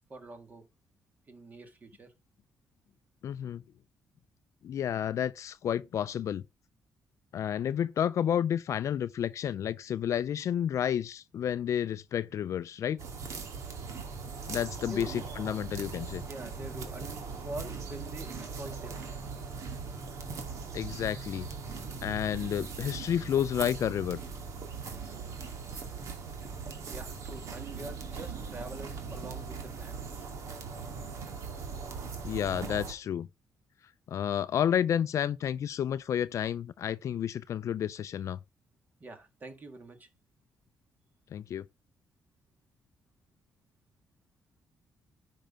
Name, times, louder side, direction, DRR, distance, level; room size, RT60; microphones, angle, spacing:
voice 1, 0.1-0.7 1.3-2.1 14.9-15.2 16.3-19.0 26.4-30.3 39.0-40.1, right 2 dB, 30° right, 1.9 m, -45 dB
voice 2, 3.2-3.6 4.6-6.4 7.3-13.0 14.5-16.2 20.7-21.5 22.0-24.2 32.2-33.3 34.1-38.4 41.3-41.6, left 9 dB, 55° left, 0.5 m, -31 dB
sound 1, 13.0-32.9, right 5 dB, 60° right, 2.2 m, -40 dB
10.5 x 5.6 x 3.7 m
cardioid pair, 145°, 6 cm